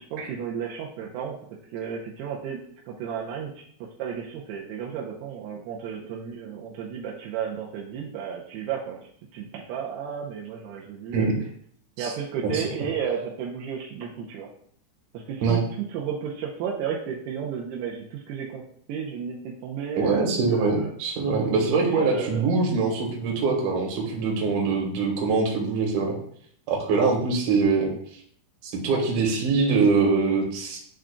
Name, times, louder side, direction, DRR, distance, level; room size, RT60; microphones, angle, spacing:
voice 1, 0.0-1.4 1.7-3.5 4.0-9.1 9.3-11.3 12.0-14.5 15.1-18.6 18.9-20.9 21.8-22.4, right 7 dB, 90° right, -2 dB, 2.4 m, -33 dB
voice 2, 20.0-26.2 26.7-27.9 28.6-30.8, right 4 dB, 65° right, -1 dB, 2.1 m, -23 dB
11.0 x 3.7 x 2.3 m, 0.62 s
omnidirectional pair, 5.6 m